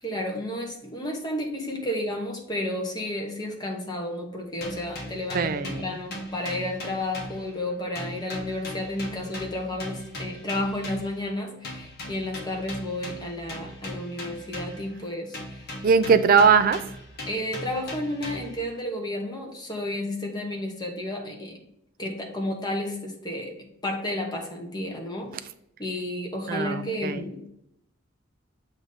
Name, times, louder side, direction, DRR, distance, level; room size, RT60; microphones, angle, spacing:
voice 1, 0.0-15.7 16.3-16.7 17.3-21.6 22.0-25.5 25.8-27.5, left 1 dB, 20° left, 1 dB, 1.0 m, -32 dB
sound 1, 4.6-7.7 8.0-11.2 11.6-15.0 15.3-18.7, left 1 dB, 55° left, 1.2 m, -38 dB
voice 2, 5.3-5.9 15.8-16.8 26.5-27.2, right 5 dB, 45° right, 12 dB, 0.4 m, -20 dB
7.2 x 2.7 x 5.0 m, 0.77 s
head